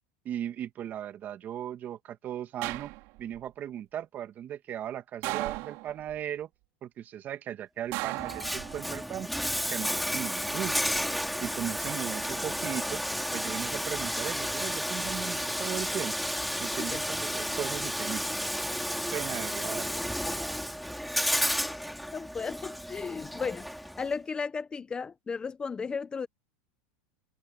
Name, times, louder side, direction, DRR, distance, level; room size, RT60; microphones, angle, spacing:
voice 1, 0.2-2.9 3.2-6.5 6.8-9.3 9.7-10.8 11.4-13.0 13.3-16.2 16.6-18.2 19.1-19.9, right 10 dB, 30° right, 2.1 m, -37 dB
sound 1, 2.6-3.4 5.2-6.2 7.9-9.1 10.5-11.0, right 24 dB, 55° right, 5.3 m, -36 dB
Bathtub (filling or washing), 8.2-24.1, equal, ahead, 3.3 m, -32 dB
voice 2, 22.1-26.3, left 5 dB, 15° left, 1.0 m, -35 dB
supercardioid pair, 140°, 6 cm